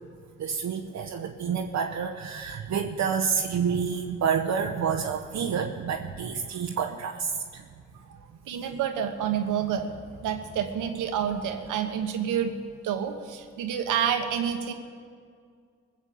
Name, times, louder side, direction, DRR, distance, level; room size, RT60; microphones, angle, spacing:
voice 1, 0.4-7.6 8.1-8.2, right 6 dB, 65° right, 2 dB, 0.9 m, -29 dB
voice 2, 8.5-9.9 10.2-12.5 12.8-14.7, right 8 dB, 85° right, 6 dB, 1.3 m, -28 dB
21.5 x 7.3 x 7.1 m, 2.1 s
supercardioid pair, 50°, 31 cm